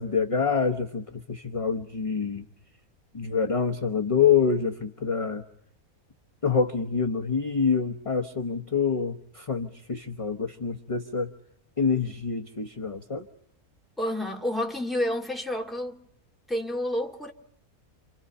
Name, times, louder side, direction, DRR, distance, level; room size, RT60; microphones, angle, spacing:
voice 1, 0.0-2.4 3.1-5.4 6.4-11.3 11.8-13.2, left 6 dB, 25° left, 1.0 m, -26 dB
voice 2, 14.0-16.0 16.5-17.3, left 1 dB, ahead, 2.1 m, -29 dB
29.0 x 28.0 x 5.6 m
omnidirectional pair, 1.5 m